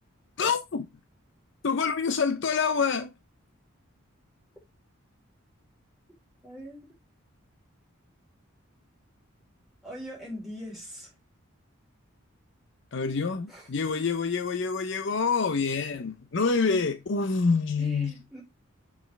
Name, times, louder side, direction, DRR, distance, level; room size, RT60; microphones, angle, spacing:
voice 1, 0.4-0.9 1.6-3.1 12.9-18.1, left 5 dB, 55° left, 0.6 m, -26 dB
voice 2, 6.4-6.9 9.8-11.1 13.5-13.7 17.8-18.4, equal, ahead, 3.7 m, -41 dB
6.2 x 4.8 x 3.3 m
head